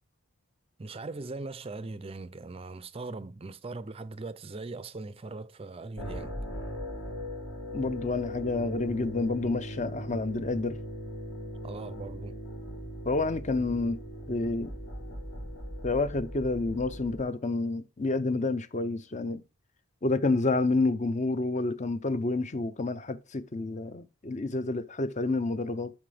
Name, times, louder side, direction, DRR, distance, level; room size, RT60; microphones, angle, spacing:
voice 1, 0.8-6.3 10.1-10.3 11.6-12.4, right 3 dB, 25° right, 0.4 m, -40 dB
sound 1, 6.0-17.2, equal, 75° left, 1.9 m, -39 dB
voice 2, 7.7-10.8 13.0-14.0 14.3-14.7 15.8-19.4 20.0-25.9, left 3 dB, 35° left, 0.6 m, -29 dB
7.4 x 5.9 x 4.8 m
head